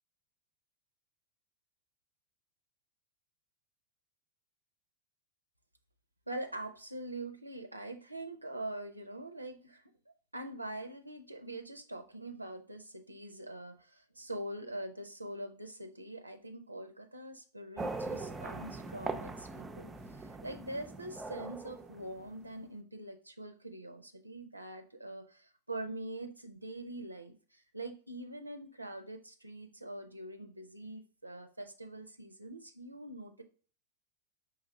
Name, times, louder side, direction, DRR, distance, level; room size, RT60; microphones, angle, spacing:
voice 1, 6.3-33.4, right 1 dB, 85° right, 7 dB, 0.4 m, -44 dB
sound 1, 17.8-22.6, right 3 dB, 15° right, 0.4 m, -41 dB
4.6 x 3.2 x 3.4 m, 0.41 s
figure-of-eight pair, 90°, 0 cm